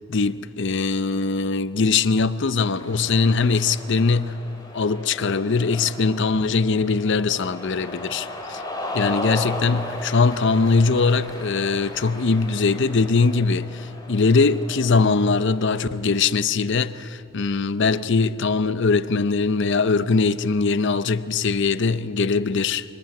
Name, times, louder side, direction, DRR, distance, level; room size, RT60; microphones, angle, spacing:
voice 1, 0.1-4.4 4.7-8.6 8.9-22.8, left 4 dB, 60° left, 0.6 m, -21 dB
Cheering, 2.7-16.1, left 1 dB, 15° left, 3.8 m, -36 dB
23.5 x 18.0 x 8.8 m
head